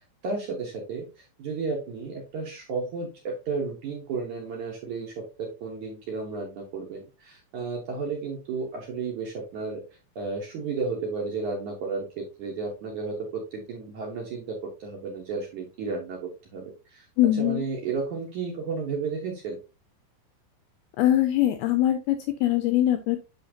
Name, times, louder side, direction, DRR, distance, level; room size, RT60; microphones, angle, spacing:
voice 1, 0.2-9.8 10.2-17.1 17.4-19.6, right 4 dB, 65° right, -1 dB, 1.9 m, -33 dB
voice 2, 17.2-17.6 21.0-23.2, left 13 dB, 80° left, 8 dB, 2.3 m, -22 dB
8.3 x 5.6 x 2.8 m, 0.29 s
omnidirectional pair, 5.1 m